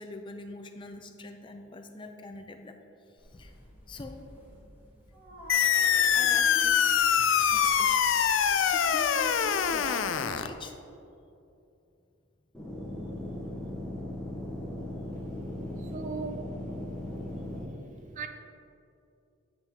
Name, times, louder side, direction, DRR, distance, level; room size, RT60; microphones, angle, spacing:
voice 1, 0.0-2.8 3.3-3.5 3.9-4.2 6.1-6.8 7.5-8.0 8.6-10.8, left 2 dB, 25° left, 0.5 m, -43 dB
sound 1, 3.2-10.5, left 1 dB, 10° right, 1.3 m, -50 dB
sound 2, 5.5-10.5, left 8 dB, 80° left, 0.4 m, -24 dB
sound 3, 12.5-17.6, left 1 dB, 5° left, 1.0 m, -38 dB
voice 2, 15.9-16.5 18.2-18.3, right 5 dB, 40° right, 0.5 m, -36 dB
7.9 x 7.8 x 2.8 m
head